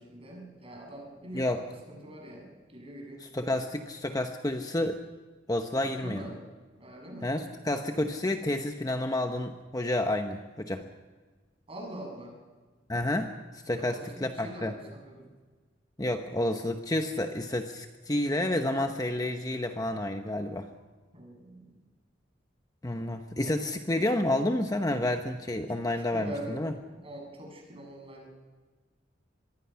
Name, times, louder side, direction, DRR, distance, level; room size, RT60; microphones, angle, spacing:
voice 1, 0.0-3.2 5.8-6.4 6.8-7.3 11.7-12.4 13.8-15.3 21.1-21.8 25.6-25.8 26.1-26.6 26.9-28.3, right 1 dB, 30° right, 1 dB, 7.1 m, -43 dB
voice 2, 3.3-5.0 5.5-6.2 7.2-10.8 12.9-13.3 13.7-14.7 16.0-20.7 22.8-26.7, left 1 dB, 20° left, 5 dB, 1.0 m, -30 dB
25.5 x 21.0 x 5.8 m, 1.4 s
head